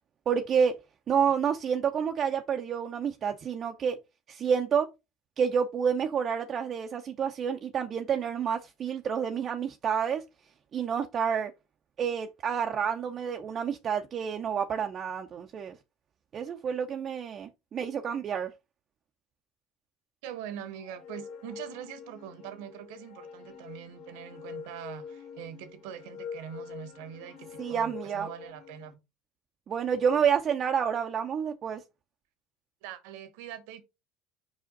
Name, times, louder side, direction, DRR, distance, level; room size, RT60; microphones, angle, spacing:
voice 1, 0.3-0.7 1.1-4.0 4.3-4.9 5.4-10.2 10.7-11.5 12.0-15.8 16.3-18.5 27.6-28.3 29.7-31.8, right 7 dB, 40° right, 0.6 m, -29 dB
voice 2, 20.2-29.0 32.8-33.8, right 10 dB, 75° right, 1.0 m, -43 dB
sound 1, 20.8-28.9, left 6 dB, 60° left, 1.8 m, -45 dB
5.0 x 5.0 x 3.9 m
supercardioid pair, 90°, 0 cm